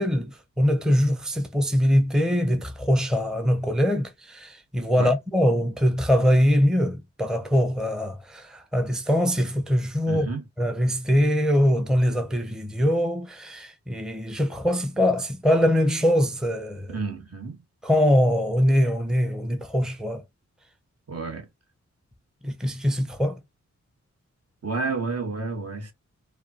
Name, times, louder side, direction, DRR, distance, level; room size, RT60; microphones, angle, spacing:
voice 1, 0.0-10.3 10.6-17.0 17.8-20.2 22.4-23.4, equal, ahead, 0.7 m, -23 dB
voice 2, 10.1-10.4 16.9-17.6 21.1-21.5 24.6-25.9, right 4 dB, 55° right, 1.3 m, -30 dB
4.8 x 2.4 x 2.8 m
wide cardioid pair, 80°, 29 cm